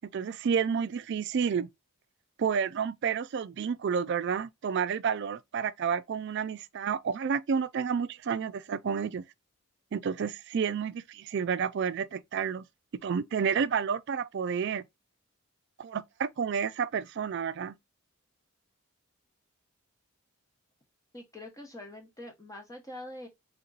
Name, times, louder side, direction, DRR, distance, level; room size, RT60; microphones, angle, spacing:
voice 1, 0.0-1.7 2.4-9.2 9.9-12.6 13.0-14.8 15.8-17.8, right 6 dB, 50° right, 0.3 m, -30 dB
voice 2, 21.1-23.3, left 1 dB, 15° left, 0.9 m, -44 dB
3.6 x 2.9 x 3.9 m
head